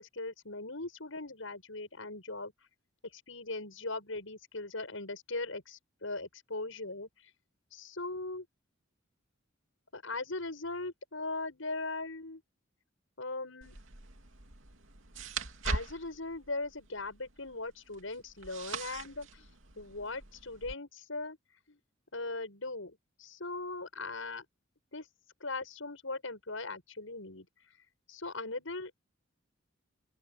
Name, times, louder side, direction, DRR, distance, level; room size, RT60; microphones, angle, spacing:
voice 1, 0.0-2.5 3.1-7.1 7.7-8.5 9.9-12.4 13.2-13.8 15.6-19.5 19.8-21.4 21.7-21.8 22.1-24.5 24.9-25.1 25.4-27.5 28.1-28.9, left 2 dB, 85° left, 6.9 m, -39 dB
sound 1, 13.6-20.7, right 3 dB, 80° right, 2.8 m, -42 dB
open air
head